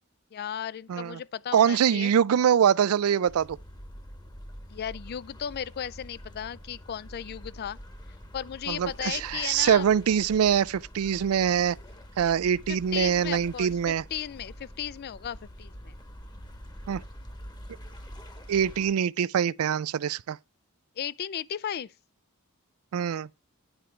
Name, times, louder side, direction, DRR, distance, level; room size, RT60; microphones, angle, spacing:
voice 1, 0.3-2.1 4.7-7.8 8.3-9.9 12.7-16.0 21.0-21.9, left 9 dB, 50° left, 0.4 m, -35 dB
voice 2, 1.5-3.6 8.7-11.8 12.2-14.0 16.9-17.0 18.5-20.4 22.9-23.3, right 8 dB, 80° right, 0.4 m, -24 dB
sound 1, 3.3-18.9, equal, 20° left, 1.1 m, -46 dB
10.5 x 4.5 x 4.9 m
head